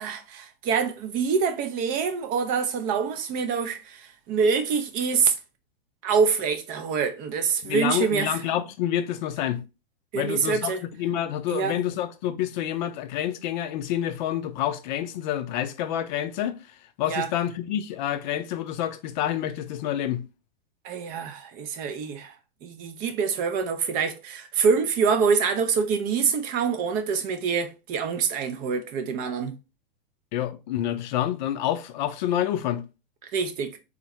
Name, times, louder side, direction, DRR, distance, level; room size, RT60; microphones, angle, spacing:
voice 1, 0.0-5.4 6.0-8.3 10.1-10.8 11.5-11.8 17.1-17.3 20.8-22.3 22.6-29.5 33.2-33.8, right 6 dB, 30° right, 0.4 m, -25 dB
voice 2, 7.6-9.6 10.1-20.2 30.3-32.8, left 11 dB, 50° left, 0.4 m, -28 dB
3.7 x 2.1 x 2.8 m
hypercardioid pair, 120°, 29 cm